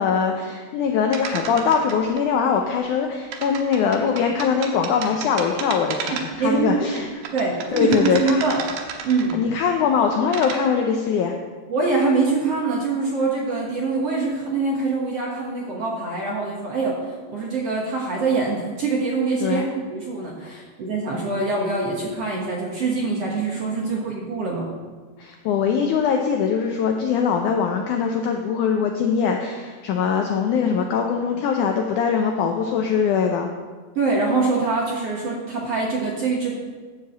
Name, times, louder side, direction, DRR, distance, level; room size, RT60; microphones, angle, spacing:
voice 1, 0.0-7.1 7.7-8.4 9.3-11.3 19.4-19.7 20.4-20.6 25.2-33.5, left 6 dB, 90° left, 3 dB, 1.7 m, -22 dB
sound 1, 1.1-2.2 3.3-6.5 7.0-9.5 10.1-10.6, right 6 dB, 90° right, 2.9 m, -33 dB
voice 2, 6.1-6.9 7.3-8.6 9.0-9.4 11.7-19.6 19.9-24.7 34.0-36.5, right 3 dB, 60° right, -3 dB, 1.8 m, -24 dB
12.0 x 4.9 x 7.4 m, 1.4 s
omnidirectional pair, 4.4 m